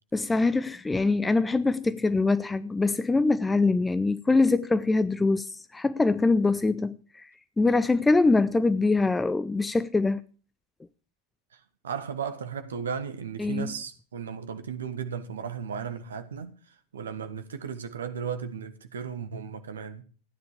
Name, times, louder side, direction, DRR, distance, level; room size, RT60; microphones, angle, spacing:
voice 1, 0.1-7.3 7.6-10.2 13.4-13.7, left 3 dB, 10° left, 0.5 m, -24 dB
voice 2, 11.8-16.5 16.9-20.0, right 7 dB, 65° right, 1.4 m, -35 dB
15.5 x 9.7 x 4.9 m
figure-of-eight pair, 90°, 0 cm